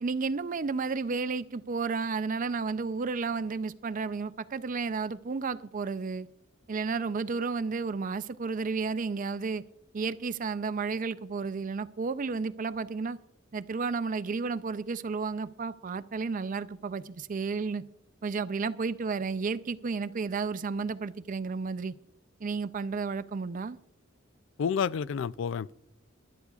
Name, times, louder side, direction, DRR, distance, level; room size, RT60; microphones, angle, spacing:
voice 1, 0.0-6.3 6.7-9.6 9.9-13.2 13.5-17.8 18.2-21.9 22.4-23.8, right 4 dB, 40° right, 0.4 m, -32 dB
voice 2, 24.6-25.7, left 7 dB, 65° left, 0.3 m, -29 dB
24.0 x 11.5 x 2.4 m
head